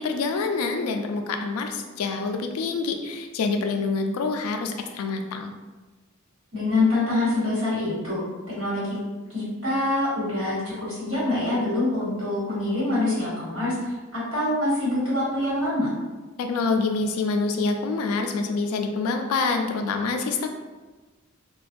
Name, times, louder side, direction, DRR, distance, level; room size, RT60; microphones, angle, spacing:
voice 1, 0.0-5.5 16.4-20.5, left 4 dB, 80° left, 6 dB, 0.3 m, -26 dB
voice 2, 6.5-8.2 8.5-8.8 9.3-15.9, left 2 dB, 85° right, -10 dB, 1.4 m, -25 dB
2.3 x 2.1 x 2.5 m, 1.2 s
head